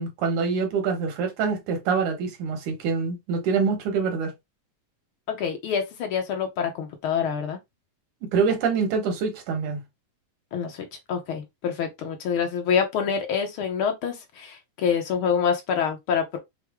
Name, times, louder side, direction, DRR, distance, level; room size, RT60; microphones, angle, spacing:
voice 1, 0.0-4.3 8.2-9.8, right 5 dB, 90° right, 2.9 m, -25 dB
voice 2, 5.3-7.6 10.5-16.4, left 7 dB, 70° left, 1.3 m, -26 dB
6.4 x 2.1 x 3.5 m
omnidirectional pair, 3.4 m